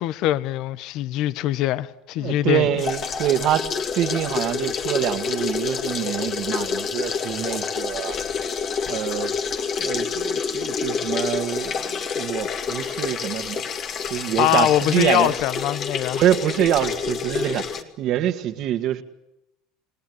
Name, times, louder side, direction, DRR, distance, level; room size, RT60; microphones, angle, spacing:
voice 1, 0.0-2.7 14.1-16.2, left 14 dB, 60° left, 0.9 m, -23 dB
voice 2, 2.2-8.2 8.9-9.3 9.8-13.6 14.1-15.3 16.2-19.0, right 12 dB, 55° right, 2.0 m, -25 dB
sound 1, 2.8-17.8, left 6 dB, 45° left, 2.4 m, -28 dB
28.5 x 19.0 x 9.6 m
supercardioid pair, 95°, 0 cm